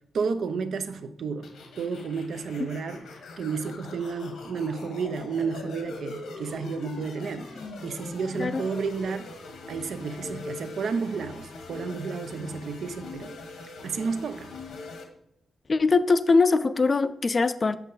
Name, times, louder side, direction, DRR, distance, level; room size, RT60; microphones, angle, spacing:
voice 1, 0.1-3.1 3.4-9.3 9.7-13.3 13.8-14.5, right 5 dB, 70° right, 0.6 m, -32 dB
sound 1, 1.4-15.0, left 3 dB, 90° left, 1.2 m, -42 dB
voice 2, 15.7-17.8, left 4 dB, 35° left, 0.4 m, -22 dB
7.3 x 5.5 x 3.9 m
cardioid pair, 90°, 0 cm